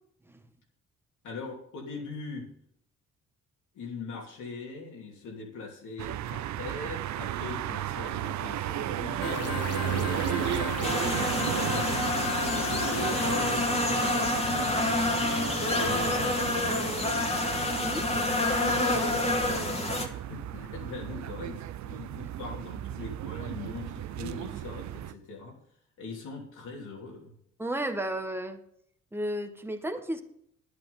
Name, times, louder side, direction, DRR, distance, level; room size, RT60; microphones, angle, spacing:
voice 1, 1.2-2.5 3.7-11.9 12.7-17.6 18.3-25.6 26.0-27.3, left 4 dB, 75° left, -1 dB, 3.2 m, -41 dB
sound 1, 6.0-25.1, right 12 dB, 65° right, 0.6 m, -34 dB
sound 2, 9.2-13.6, left 7 dB, 55° left, 1.0 m, -35 dB
sound 3, 10.8-20.1, left 2 dB, 20° left, 1.9 m, -28 dB
voice 2, 27.6-28.6 29.1-30.2, right 1 dB, 10° right, 6 dB, 1.3 m, -33 dB
10.5 x 8.3 x 5.4 m, 0.70 s
cardioid pair, 90°, 30 cm